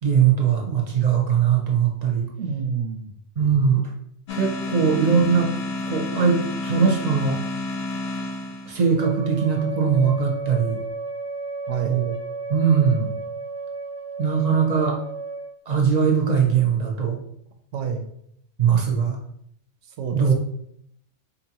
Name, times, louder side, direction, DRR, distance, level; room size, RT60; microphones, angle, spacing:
voice 1, 0.0-2.2 3.4-3.8 4.3-5.5 5.9-7.4 8.7-10.8 11.8-12.1 12.5-13.2 14.2-15.0 15.7-17.2 18.6-19.2 20.1-20.3, right 6 dB, 40° right, -1 dB, 0.7 m, -20 dB
voice 2, 2.4-3.1 11.7-12.0 17.7-18.1 20.0-20.3, right 6 dB, 80° right, 5 dB, 0.9 m, -28 dB
sound 1, 4.3-9.0, left 2 dB, 65° left, 0.8 m, -30 dB
Wind instrument woodwind instrument, 9.0-15.5, right 3 dB, 5° left, 0.5 m, -33 dB
4.1 x 2.7 x 2.8 m, 0.71 s
omnidirectional pair, 1.2 m